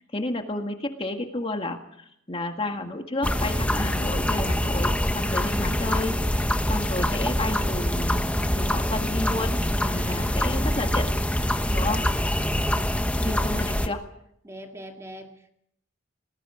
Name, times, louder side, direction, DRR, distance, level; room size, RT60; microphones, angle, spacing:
voice 1, 0.0-11.1 11.7-12.0 13.2-14.0, left 2 dB, 25° left, 4 dB, 1.8 m, -31 dB
sound 1, 3.2-13.9, left 1 dB, 5° left, 1.1 m, -25 dB
voice 2, 9.9-10.9 11.8-13.7 14.4-15.5, equal, 15° right, 3 dB, 2.1 m, -44 dB
27.0 x 20.0 x 5.0 m, 0.74 s
head